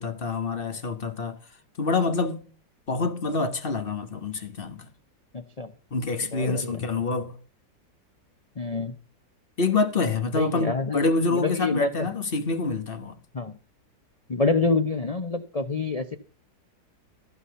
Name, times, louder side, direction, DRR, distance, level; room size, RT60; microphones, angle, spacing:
voice 1, 0.0-1.4 1.8-2.5 2.9-4.8 5.9-7.3 9.6-13.2, left 3 dB, 35° left, 1.3 m, -26 dB
voice 2, 5.3-5.7 6.3-6.8 8.6-8.9 10.4-11.0 11.3-12.1 13.3-13.5 14.3-16.2, left 3 dB, 85° left, 0.3 m, -27 dB
14.5 x 5.7 x 7.9 m
omnidirectional pair, 1.9 m